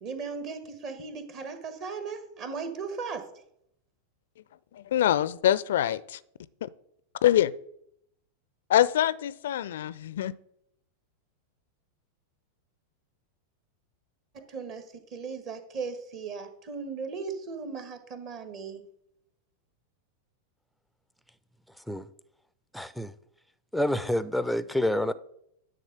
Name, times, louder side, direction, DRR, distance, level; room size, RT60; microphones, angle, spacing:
voice 1, 0.0-3.3 14.3-18.8, right 5 dB, 40° right, 1.4 m, -37 dB
voice 2, 4.7-6.2 6.6-6.7 7.2-7.5 8.7-10.3, left 11 dB, 60° left, 0.4 m, -24 dB
voice 3, 22.7-23.1 23.7-25.1, left 1 dB, ahead, 0.5 m, -27 dB
10.5 x 3.8 x 6.8 m
figure-of-eight pair, 90°, 0 cm